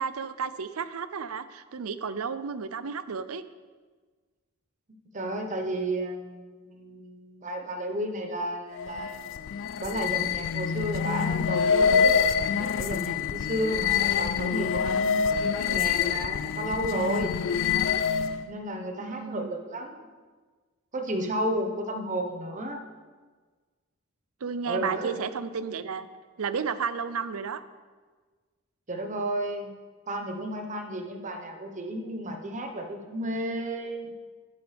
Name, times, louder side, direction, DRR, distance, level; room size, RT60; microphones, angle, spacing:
voice 1, 0.0-3.4 19.0-19.5 24.4-26.1 26.4-27.6, right 6 dB, 75° right, 13 dB, 0.5 m, -32 dB
voice 2, 4.9-9.4 9.8-17.3 18.5-20.0 20.9-22.8 24.7-25.2 28.9-29.7 30.1-34.1, right 1 dB, 35° right, 4 dB, 1.1 m, -32 dB
sound 1, 8.7-18.5, left 6 dB, 60° left, 0.4 m, -26 dB
11.0 x 10.5 x 3.4 m, 1.4 s
head